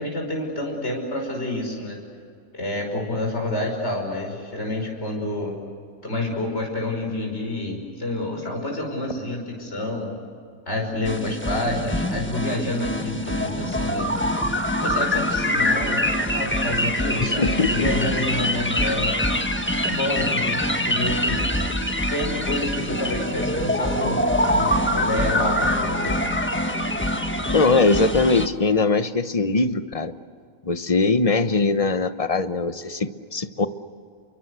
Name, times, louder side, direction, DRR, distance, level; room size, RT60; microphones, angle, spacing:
voice 1, 0.0-2.0 2.5-5.6 6.0-10.2 10.7-14.1 14.8-19.2 19.8-21.4 22.1-26.2, left 1 dB, 55° left, 0 dB, 5.9 m, -28 dB
sound 1, 11.0-28.5, left 1 dB, 10° left, 1.4 m, -24 dB
voice 2, 17.2-17.9 27.4-30.1 30.6-33.7, left 3 dB, 30° left, 11 dB, 1.0 m, -21 dB
29.5 x 23.5 x 8.1 m, 2.2 s
omnidirectional pair, 1.4 m